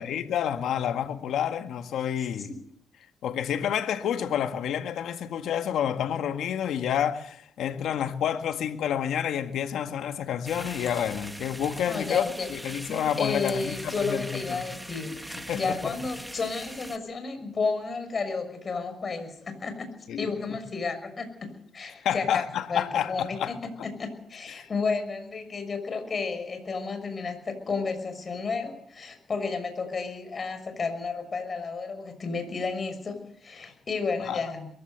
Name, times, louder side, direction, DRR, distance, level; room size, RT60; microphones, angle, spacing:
voice 1, 0.0-2.5 3.2-14.6 15.4-15.9 20.1-20.6 21.9-23.5 23.8-23.9 24.5-24.7 34.2-34.4, left 9 dB, 75° left, 1.8 m, -29 dB
sound 1, 10.5-17.0, right 1 dB, 5° right, 1.7 m, -41 dB
voice 2, 11.8-12.5 12.9-19.9 20.2-23.5 24.0-34.7, left 4 dB, 40° left, 6.3 m, -32 dB
22.5 x 15.5 x 8.1 m
cardioid pair, 90°, 0 cm